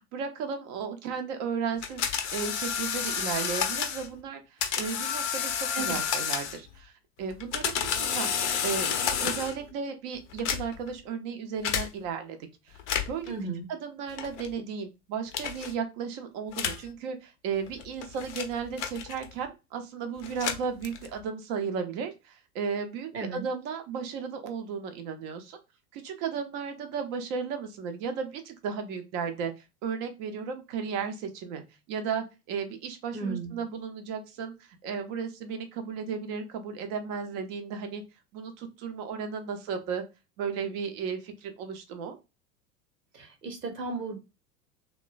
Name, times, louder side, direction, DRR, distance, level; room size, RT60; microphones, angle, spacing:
voice 1, 0.0-6.9 7.2-8.3 8.6-12.4 12.7-12.8 13.1-13.3 13.7-25.6 25.9-29.5 29.8-31.6 31.9-38.0 38.3-40.0 40.4-42.2, right 6 dB, 30° right, 6 dB, 0.4 m, -34 dB
sound 1, 1.8-4.1 4.6-6.7 7.3-9.6 10.3-10.9 11.6-11.9 12.8-13.3 14.2-14.5 15.3-15.7 16.5-16.9 17.7-19.4 20.2-21.2, left 7 dB, 50° left, 0.5 m, -30 dB
voice 2, 13.3-13.6 23.1-23.5 33.1-33.6 43.1-44.2, right 4 dB, 90° right, 3 dB, 0.9 m, -34 dB
3.1 x 2.1 x 2.3 m, 0.26 s
figure-of-eight pair, 85°, 47 cm